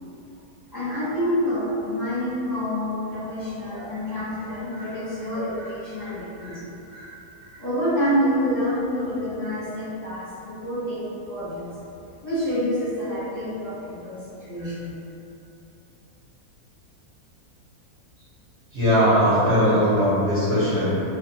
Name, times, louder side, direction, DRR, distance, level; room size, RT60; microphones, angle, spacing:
voice 1, 0.7-11.7 12.2-14.9, equal, 30° left, -13 dB, 1.1 m, -28 dB
voice 2, 18.7-21.0, equal, 50° right, -11 dB, 1.1 m, -19 dB
3.4 x 2.5 x 4.1 m, 2.9 s
omnidirectional pair, 1.7 m